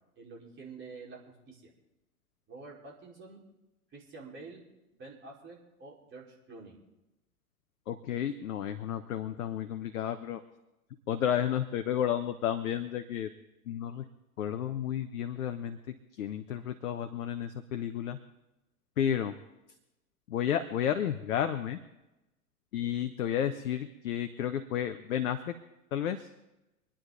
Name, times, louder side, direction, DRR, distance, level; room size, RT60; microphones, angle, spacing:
voice 1, 0.2-1.2 1.5-1.7 2.5-3.4 3.9-4.6 4.9-6.8, right 3 dB, 25° right, -3 dB, 5.0 m, -48 dB
voice 2, 7.9-10.4 11.1-13.3 13.7-14.0 14.4-15.8 16.1-18.2 19.0-19.3 20.3-21.8 22.7-25.4 25.9-26.3, left 10 dB, 65° left, 8 dB, 1.1 m, -32 dB
26.0 x 10.0 x 4.1 m, 0.97 s
figure-of-eight pair, 95°, 45 cm